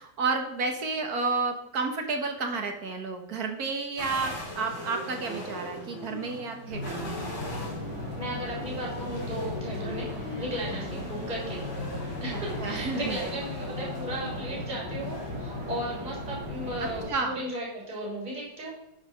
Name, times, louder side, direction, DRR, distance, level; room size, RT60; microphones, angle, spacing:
voice 1, 0.0-7.2 12.3-13.2 16.8-17.4, right 4 dB, 60° right, 4 dB, 1.8 m, -31 dB
sound 1, 4.0-15.8, left 1 dB, 40° left, 2.7 m, -40 dB
sound 2, 6.7-17.1, left 1 dB, 75° right, 3.2 m, -37 dB
voice 2, 8.2-10.1 10.4-11.6 12.2-18.7, right 1 dB, 25° right, -4 dB, 3.2 m, -35 dB
11.0 x 5.1 x 5.1 m, 0.91 s
omnidirectional pair, 1.9 m